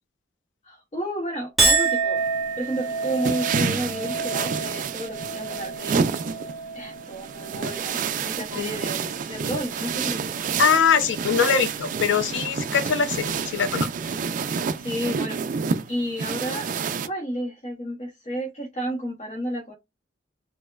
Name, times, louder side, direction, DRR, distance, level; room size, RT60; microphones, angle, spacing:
voice 1, 0.6-2.2 2.6-6.1 6.7-10.6 14.8-15.4 15.9-16.7 17.0-19.7, right 1 dB, 35° left, 0.7 m, -31 dB
Chink clink, 1.6-8.1 8.5-9.1, right 4 dB, ahead, 1.0 m, -28 dB
sound 1, 2.2-17.1, right 6 dB, 45° right, 0.3 m, -29 dB
voice 2, 10.6-13.9, left 6 dB, 85° left, 0.5 m, -22 dB
4.3 x 2.0 x 2.3 m
head